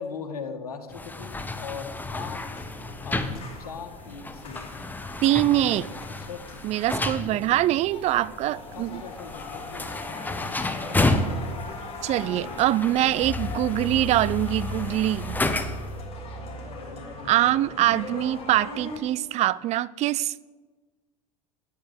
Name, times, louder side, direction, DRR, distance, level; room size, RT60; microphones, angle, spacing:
voice 1, 0.0-2.4 3.0-3.2 3.6-4.7 5.2-5.9 6.3-6.6 7.2-7.7 8.7-11.7 12.4-13.2 16.2-17.9, left 5 dB, 85° left, 1.7 m, -41 dB
sound 1, 0.9-16.0, left 2 dB, 10° left, 1.1 m, -32 dB
sound 2, 2.5-19.0, left 2 dB, 30° left, 5.5 m, -38 dB
voice 2, 5.2-5.9 6.6-9.0 12.0-15.4 17.3-20.4, right 14 dB, 35° right, 0.4 m, -24 dB
10.5 x 9.8 x 8.0 m
hypercardioid pair, 90°, 19 cm